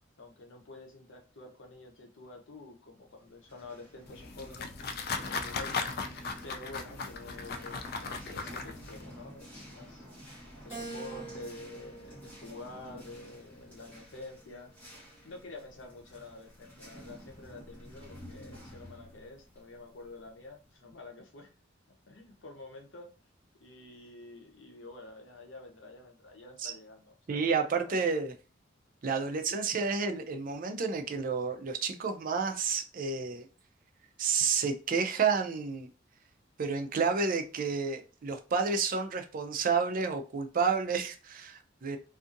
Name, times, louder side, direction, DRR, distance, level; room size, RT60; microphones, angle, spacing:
voice 1, 0.2-5.8 6.4-10.1 10.6-14.7 15.2-21.5 22.1-23.1 23.6-28.0, left 2 dB, 75° left, 2 dB, 0.8 m, -48 dB
sound 1, 3.3-20.7, equal, 10° left, 1.3 m, -50 dB
sound 2, 4.1-9.0, left 4 dB, 55° left, 0.3 m, -37 dB
Keyboard (musical), 10.7-13.2 13.8-15.0, right 3 dB, 10° right, 1.2 m, -47 dB
voice 2, 27.3-28.3 29.0-33.5 34.2-35.9 36.6-42.0, right 5 dB, 45° right, 6 dB, 0.4 m, -30 dB
2.6 x 2.4 x 2.5 m, 0.33 s
head